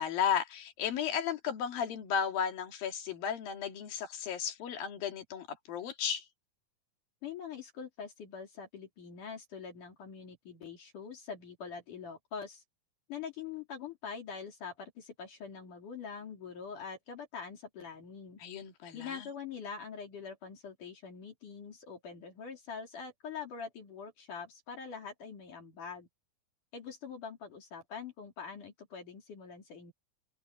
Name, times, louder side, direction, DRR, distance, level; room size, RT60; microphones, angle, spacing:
voice 1, 0.0-6.3 18.4-19.2, left 8 dB, 85° left, 4.1 m, -34 dB
voice 2, 7.2-12.6 13.1-18.4 18.9-26.1 26.7-29.9, left 6 dB, 65° left, 4.7 m, -44 dB
open air
omnidirectional pair, 4.0 m